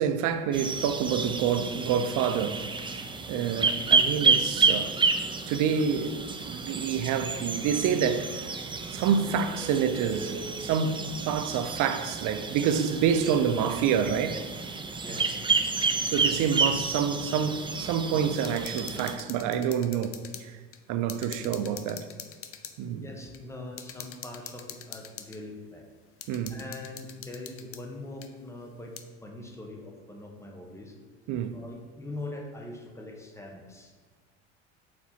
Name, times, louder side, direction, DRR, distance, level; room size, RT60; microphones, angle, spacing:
voice 1, 0.0-2.6 3.3-4.9 5.5-8.4 8.9-14.4 16.0-20.6 20.9-22.1 22.8-23.0 26.3-26.6 31.3-31.6, right 7 dB, 55° right, 0.6 m, -27 dB
sound 1, 0.5-19.2, right 4 dB, 15° right, 0.5 m, -30 dB
voice 2, 15.0-15.4 23.0-25.9 26.5-31.0 31.5-34.0, left 2 dB, 10° left, 1.1 m, -42 dB
sound 2, 18.3-20.4 20.7-20.8 21.1-22.8 23.3-23.4 23.8-25.4 26.2-27.8 28.2-28.3 29.0-29.1, left 9 dB, 40° left, 0.6 m, -44 dB
4.5 x 4.3 x 5.7 m
hypercardioid pair, 80°, 37 cm